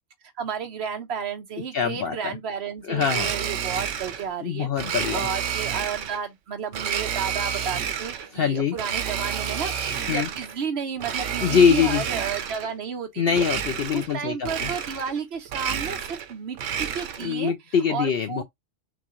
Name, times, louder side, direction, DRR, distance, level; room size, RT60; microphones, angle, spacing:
voice 1, 0.4-4.7 5.1-13.4 13.9-17.5 17.9-18.4, right 6 dB, 60° right, 1.2 m, -32 dB
voice 2, 1.7-2.4 2.9-3.3 4.4-5.3 8.3-8.8 10.1-10.3 11.4-12.0 13.2-14.7 17.2-18.4, left 7 dB, 60° left, 0.7 m, -23 dB
Domestic sounds home sounds, 3.0-4.3 4.8-6.2 6.7-8.3 8.7-10.6 11.0-12.7 13.3-14.2 14.4-15.2 15.5-17.3, right 8 dB, 85° right, 1.1 m, -30 dB
5.9 x 2.3 x 3.0 m
omnidirectional pair, 1.2 m